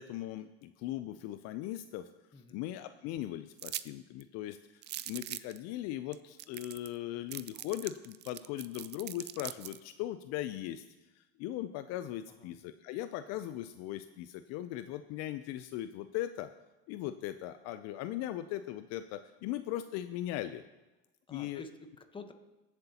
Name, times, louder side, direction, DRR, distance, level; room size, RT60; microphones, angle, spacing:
voice 1, 0.0-2.1 2.5-10.8 11.2-16.5 16.9-20.6 21.3-21.6, left 13 dB, 60° left, 11 dB, 0.5 m, -39 dB
voice 2, 2.3-2.7 12.3-12.6 21.3-22.3, left 3 dB, 15° left, 7 dB, 1.1 m, -50 dB
sound 1, 3.6-3.9 4.2-4.3 4.8-5.6 6.1-6.2 6.4-7.0 7.3-9.8, right 14 dB, 35° right, 0.4 m, -41 dB
21.5 x 7.8 x 2.9 m, 1.1 s
supercardioid pair, 110°, 29 cm